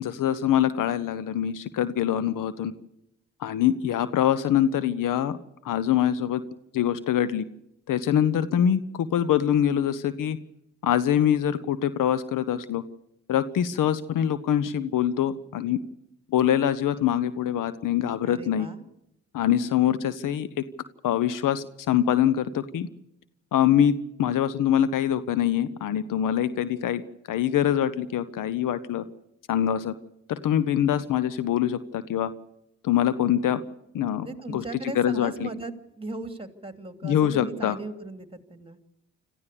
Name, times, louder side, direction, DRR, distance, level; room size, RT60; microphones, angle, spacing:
voice 1, 0.0-2.7 3.4-5.4 5.6-6.4 6.7-7.4 7.9-10.4 10.8-12.8 13.3-15.8 16.3-18.7 19.3-20.5 21.0-22.9 23.5-27.0 27.3-29.0 29.5-29.9 30.3-32.3 32.8-33.6 33.9-34.6 34.9-35.5 37.0-37.8, left 10 dB, 70° left, 15 dB, 1.1 m, -24 dB
voice 2, 18.3-18.9 34.2-38.8, right 2 dB, 15° right, 7 dB, 3.0 m, -37 dB
26.5 x 14.5 x 6.9 m, 0.81 s
hypercardioid pair, 40°, 34 cm